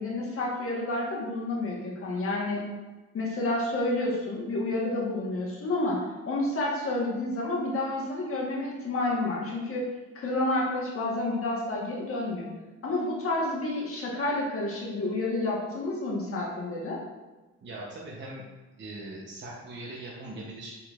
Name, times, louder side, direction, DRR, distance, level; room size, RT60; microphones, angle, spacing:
voice 1, 0.0-2.6 3.1-6.0 6.3-9.9 10.1-12.5 12.8-17.0, left 2 dB, 45° left, -3 dB, 1.4 m, -29 dB
voice 2, 17.6-18.5 18.8-20.7, right 2 dB, 40° right, -4 dB, 0.9 m, -40 dB
5.7 x 3.7 x 2.4 m, 1.2 s
cardioid pair, 90°, 30 cm